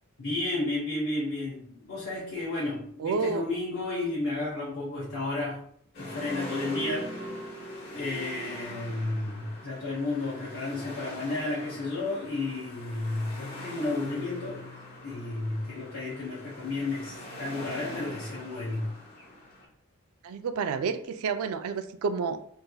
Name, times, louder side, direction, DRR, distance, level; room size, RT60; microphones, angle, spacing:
voice 1, 0.2-5.6 5.9-7.3 7.9-14.6 15.0-18.9, left 2 dB, 80° left, -7 dB, 1.0 m, -32 dB
voice 2, 3.0-3.4 20.2-22.4, right 5 dB, 90° right, 9 dB, 0.4 m, -29 dB
sound 1, 5.9-19.7, equal, 45° left, 0.9 m, -41 dB
3.3 x 3.2 x 2.2 m, 0.65 s
head